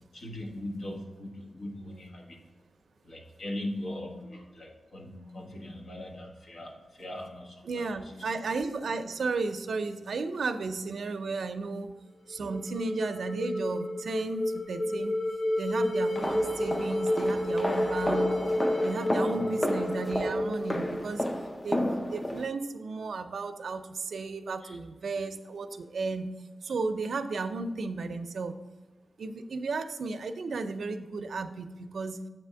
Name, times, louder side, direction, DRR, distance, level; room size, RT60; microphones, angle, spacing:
voice 1, 0.0-2.6 3.0-8.3 19.4-19.5 24.6-24.8, left 1 dB, 65° left, -1 dB, 1.3 m, -40 dB
voice 2, 7.7-11.9 12.3-15.2 15.6-18.5 18.8-21.3 21.6-26.3 26.6-28.5 29.2-32.2, right 3 dB, 70° right, 8 dB, 0.5 m, -34 dB
sound 1, 12.3-21.5, left 1 dB, 45° left, 0.9 m, -30 dB
sound 2, 16.1-22.5, left 1 dB, 20° left, 0.5 m, -32 dB
7.9 x 3.5 x 5.7 m, 1.2 s
wide cardioid pair, 145°, 0 cm